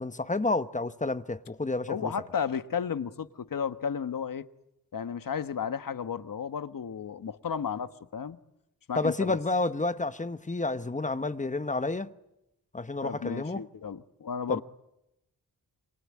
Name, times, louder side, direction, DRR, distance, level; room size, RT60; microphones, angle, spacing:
voice 1, 0.0-2.1 9.0-12.1 12.7-13.6 14.5-14.6, left 2 dB, 20° left, 1.0 m, -30 dB
voice 2, 1.9-4.5 4.9-8.4 8.9-9.4 13.0-14.6, left 7 dB, 60° left, 1.3 m, -33 dB
27.5 x 25.0 x 8.5 m
wide cardioid pair, 110°, 37 cm